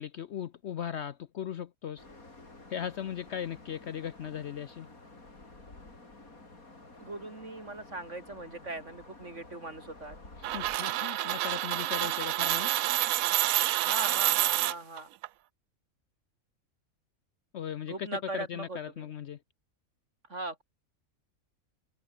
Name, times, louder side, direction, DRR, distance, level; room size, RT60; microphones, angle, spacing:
voice 1, 0.0-2.0 2.7-4.9 10.4-12.7 17.5-18.1 18.3-19.4, left 9 dB, 60° left, 0.8 m, -38 dB
sound 1, 2.0-10.8, left 2 dB, 75° left, 5.4 m, -51 dB
voice 2, 7.0-10.2 13.7-15.1 17.9-19.1 20.3-20.6, right 2 dB, 55° right, 4.8 m, -39 dB
sound 2, 10.4-15.3, right 14 dB, 75° right, 1.0 m, -28 dB
omnidirectional pair, 1.5 m